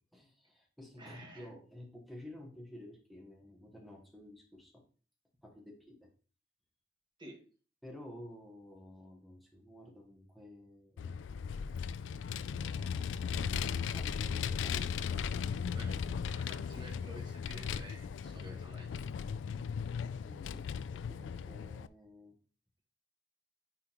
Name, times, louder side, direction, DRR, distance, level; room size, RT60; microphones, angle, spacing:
voice 1, 0.1-4.8 5.4-6.1 7.8-11.2 12.4-15.1 20.2-22.4, left 1 dB, ahead, -1 dB, 1.2 m, -52 dB
voice 2, 1.0-1.5 7.2-7.4 15.7-16.0 16.3-18.9, right 1 dB, 25° right, -1 dB, 1.4 m, -52 dB
Vehicle, 11.0-21.9, left 6 dB, 90° left, 0.3 m, -37 dB
9.8 x 3.6 x 3.0 m, 0.39 s
head